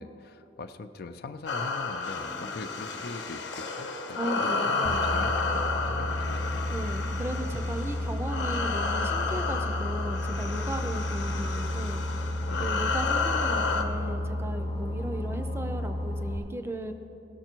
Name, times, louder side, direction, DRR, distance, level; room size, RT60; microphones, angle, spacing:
voice 1, 0.0-6.6 12.5-12.8, left 3 dB, 55° left, 9 dB, 0.4 m, -42 dB
sound 1, 1.5-13.8, left 4 dB, 75° left, 1.0 m, -31 dB
voice 2, 4.2-5.0 6.7-12.3 12.6-16.9, equal, 15° right, 7 dB, 0.5 m, -36 dB
Boat Water vehicle, 4.8-16.4, left 1 dB, 35° left, 1.0 m, -32 dB
17.5 x 6.6 x 4.5 m, 3.0 s
head